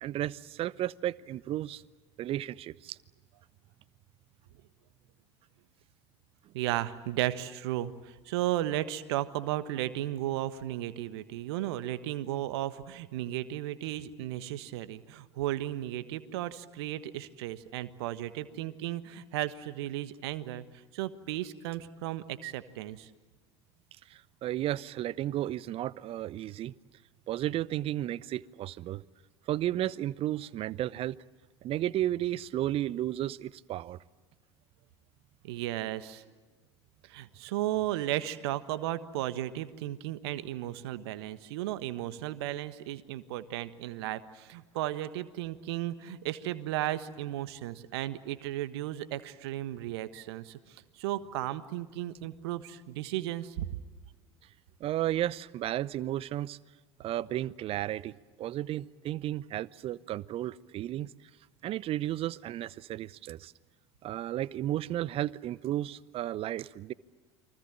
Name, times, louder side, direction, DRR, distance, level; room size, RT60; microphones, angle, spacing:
voice 1, 0.0-1.8 2.2-3.0 24.1-26.7 27.3-29.0 29.5-31.2 31.6-34.0 54.8-56.6 57.0-61.1 61.6-63.5 64.0-66.9, right 13 dB, 40° right, 21 dB, 0.7 m, -33 dB
voice 2, 6.5-20.6 20.9-23.1 35.4-36.2 37.0-53.7, right 14 dB, 60° right, 13 dB, 1.4 m, -35 dB
30.0 x 24.0 x 7.4 m, 1.3 s
figure-of-eight pair, 75°, 15 cm